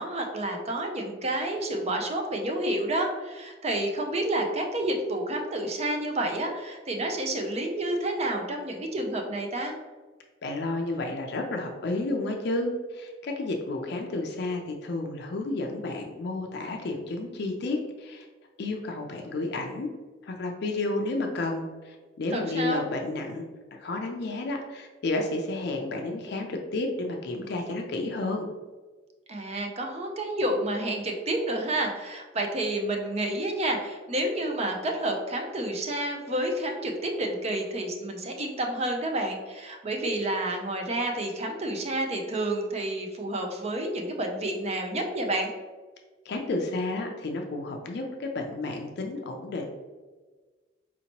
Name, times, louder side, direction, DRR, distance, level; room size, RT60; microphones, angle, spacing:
voice 1, 0.0-9.7 22.3-22.8 29.3-45.5, right 1 dB, 35° right, 3 dB, 0.5 m, -29 dB
voice 2, 10.4-18.3 18.6-19.9 20.2-23.5 23.8-28.5 46.3-49.7, left 2 dB, 60° left, 2 dB, 0.4 m, -31 dB
4.3 x 2.8 x 2.9 m, 1.3 s
head